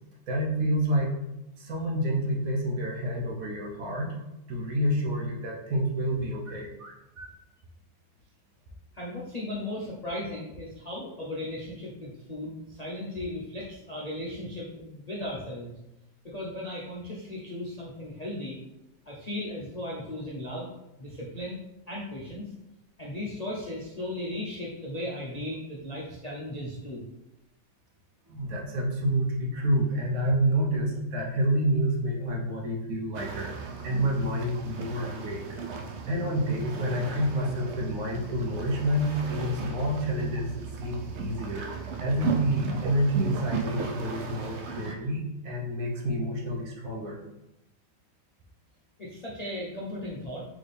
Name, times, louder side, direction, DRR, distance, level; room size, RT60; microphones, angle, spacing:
voice 1, 0.3-1.1 1.6-4.1 4.5-7.3 28.3-35.4 36.1-40.5 40.8-47.2, right 1 dB, 60° right, -2 dB, 1.2 m, -28 dB
voice 2, 8.9-15.7 16.2-18.6 19.1-20.7 21.0-21.6 21.9-22.5 23.0-27.0 30.6-30.7 49.0-50.5, left 1 dB, 70° left, -5 dB, 0.3 m, -36 dB
sound 1, 33.1-45.0, right 5 dB, 85° right, 0.6 m, -36 dB
4.2 x 3.5 x 3.3 m, 0.94 s
omnidirectional pair, 1.8 m